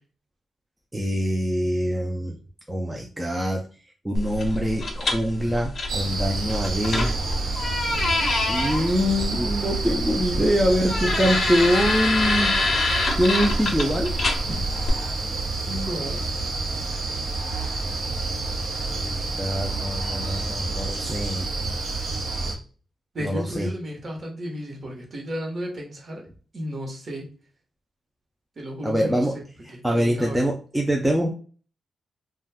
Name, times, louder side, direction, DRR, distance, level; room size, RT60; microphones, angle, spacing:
voice 1, 0.9-2.4 2.7-3.6 4.0-7.1 7.5-7.7 8.5-12.5 13.2-14.1 14.5-14.6 18.9-21.7 23.2-23.7 28.8-29.4 29.6-31.3, equal, 5° right, 0 dB, 0.4 m, -24 dB
sound 1, 4.2-14.9, left 2 dB, 45° left, 0.6 m, -26 dB
sound 2, 5.9-22.5, right 3 dB, 75° right, 0.9 m, -29 dB
voice 2, 15.6-16.3 23.1-26.2 26.5-27.3 28.6-29.4 29.7-30.4, equal, 40° right, 0 dB, 1.0 m, -33 dB
2.5 x 2.2 x 3.4 m, 0.38 s
wide cardioid pair, 130°, 0 cm